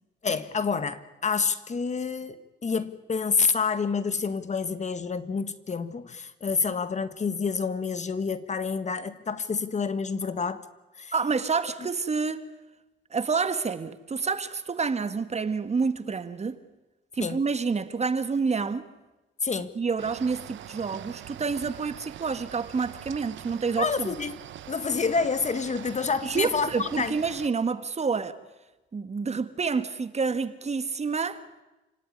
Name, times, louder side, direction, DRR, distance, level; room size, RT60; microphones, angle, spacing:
voice 1, 0.2-10.7 11.0-11.1 17.2-17.4 19.4-19.7 23.8-24.3 24.7-27.2, left 5 dB, 35° left, 1.6 m, -28 dB
voice 2, 11.1-12.5 13.1-16.6 17.1-18.8 19.7-24.1 26.2-28.4 28.9-31.4, right 5 dB, 35° right, 1.6 m, -28 dB
sound 1, 20.0-27.5, right 12 dB, 70° right, 0.8 m, -43 dB
28.0 x 17.5 x 9.8 m
cardioid pair, 90°, 20 cm